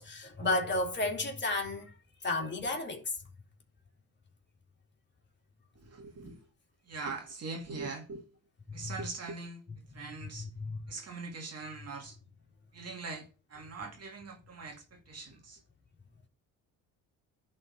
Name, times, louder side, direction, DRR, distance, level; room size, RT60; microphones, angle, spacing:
voice 1, 0.0-1.9 2.2-3.0 8.7-9.0 10.2-10.8 11.8-11.9, left 2 dB, 30° left, 2.8 m, -33 dB
voice 2, 5.8-6.4 6.9-8.2 8.7-9.6 9.9-10.5 10.9-12.1 12.7-13.3 13.5-15.6, right 4 dB, 45° right, 2.2 m, -41 dB
11.0 x 4.4 x 7.1 m
supercardioid pair, 75°, 35 cm